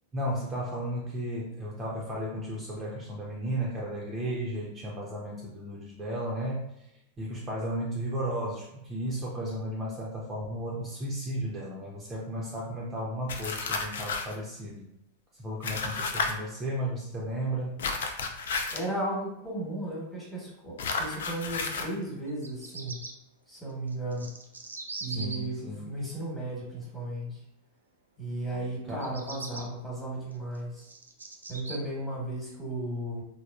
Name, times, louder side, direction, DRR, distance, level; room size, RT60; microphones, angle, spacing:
voice 1, 0.1-6.9 7.2-14.9 15.3-17.8 25.1-25.9 28.9-29.1, right 1 dB, 20° right, -4 dB, 0.5 m, -34 dB
sound 1, 13.3-14.4 15.6-16.3 17.8-18.9 20.8-21.9, left 4 dB, 60° left, 0.3 m, -32 dB
voice 2, 18.7-23.0 23.5-24.3 25.0-27.4 28.2-30.9 31.5-33.2, right 1 dB, 10° left, -5 dB, 1.1 m, -35 dB
Bird vocalization bird call bird song, 22.3-23.1 23.9-25.4 28.9-29.6 30.3-31.8, right 3 dB, 75° right, 0.3 m, -41 dB
3.4 x 2.0 x 2.3 m, 0.84 s
figure-of-eight pair, 90°, 0 cm